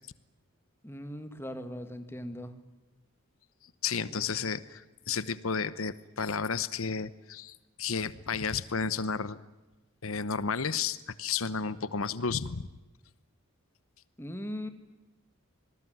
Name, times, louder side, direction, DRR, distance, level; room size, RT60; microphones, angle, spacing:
voice 1, 0.8-2.5 4.1-4.2 14.2-14.7, equal, 10° left, 8 dB, 2.1 m, -39 dB
voice 2, 3.8-9.4 10.0-12.7, left 5 dB, 80° left, 16 dB, 1.0 m, -32 dB
26.5 x 20.0 x 9.5 m, 1.1 s
head